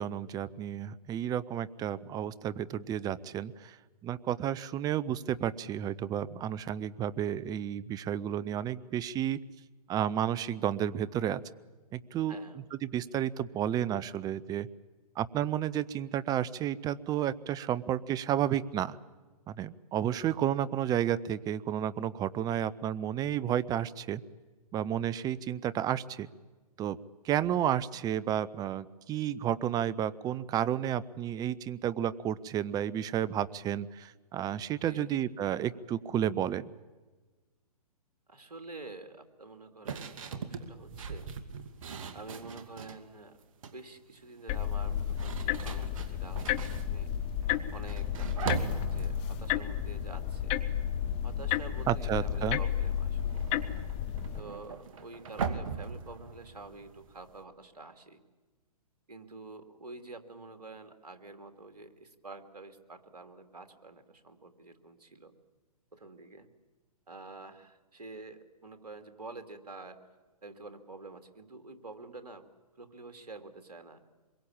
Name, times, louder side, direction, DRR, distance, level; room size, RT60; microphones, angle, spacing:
voice 1, 0.0-3.8 4.0-9.4 9.9-11.4 11.9-12.4 12.8-14.7 15.2-19.0 19.5-24.2 24.7-26.3 26.8-27.0 27.2-36.7 51.9-52.6, right 10 dB, 20° right, 18 dB, 0.7 m, -31 dB
voice 2, 12.3-12.7 20.1-20.2 34.8-35.1 38.3-41.3 42.1-43.4 43.7-47.1 47.7-50.6 51.2-53.6 54.4-58.2 59.1-65.3 65.9-66.5 67.1-70.1 70.4-72.4 72.8-74.0, right 3 dB, 85° right, 7 dB, 2.8 m, -48 dB
sound 1, 39.8-43.0 43.4-43.9 44.8-51.0 51.3-51.7 51.9-57.4, right 5 dB, 60° right, 2.3 m, -40 dB
sound 2, 44.5-54.4, left 10 dB, 30° left, 1.1 m, -32 dB
25.5 x 22.5 x 8.8 m, 1.3 s
hypercardioid pair, 125°, 20 cm